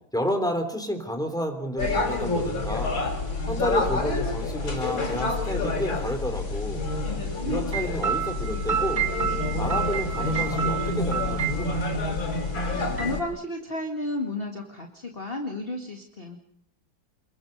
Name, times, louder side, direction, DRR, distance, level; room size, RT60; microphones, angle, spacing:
voice 1, 0.1-3.0 3.4-6.9 7.5-9.0 9.6-11.8, equal, ahead, 5 dB, 3.5 m, -31 dB
sound 1, 1.8-13.2, left 3 dB, 75° left, 5.1 m, -28 dB
sound 2, 7.7-11.9 12.3-12.4 12.7-13.2, right 8 dB, 30° right, 2.8 m, -29 dB
voice 2, 12.9-16.4, left 1 dB, 30° left, 1 dB, 2.2 m, -32 dB
28.0 x 22.5 x 5.4 m, 0.67 s
omnidirectional pair, 2.2 m